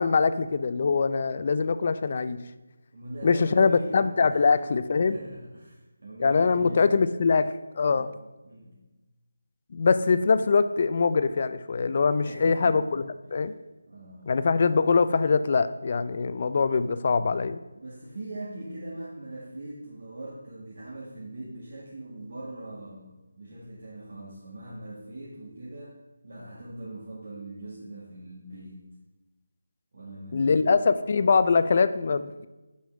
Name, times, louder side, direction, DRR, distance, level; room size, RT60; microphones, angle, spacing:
voice 1, 0.0-2.4 3.2-5.1 6.2-8.1 9.7-13.0 13.3-13.5 14.3-17.6 30.3-32.5, left 4 dB, 40° left, 13 dB, 0.4 m, -23 dB
voice 2, 2.9-7.0 7.8-8.1 8.4-8.8 12.2-12.9 13.2-13.5 13.9-14.3 17.7-26.0 26.2-28.8 29.9-30.8, right 1 dB, 60° right, -5 dB, 1.8 m, -41 dB
6.0 x 5.6 x 6.8 m, 1.1 s
figure-of-eight pair, 170°, 0 cm